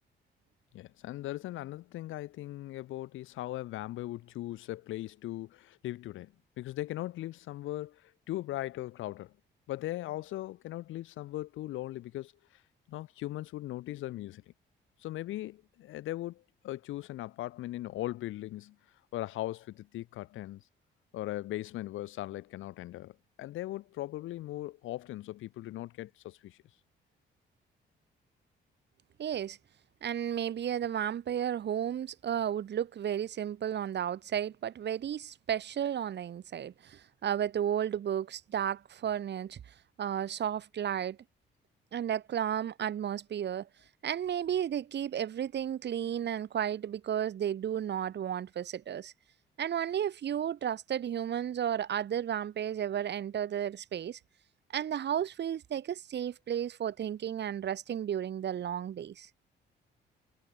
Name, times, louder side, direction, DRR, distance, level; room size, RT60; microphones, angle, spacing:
voice 1, 0.7-9.3 9.7-12.3 12.9-14.4 15.0-18.8 19.1-20.6 21.1-26.6, left 15 dB, 90° left, 3.4 m, -39 dB
voice 2, 29.2-29.6 30.0-39.6 40.0-41.2 41.9-43.7 44.0-49.1 49.6-54.2 54.7-59.3, right 9 dB, 60° right, 2.1 m, -33 dB
cardioid pair, 90°, 20 cm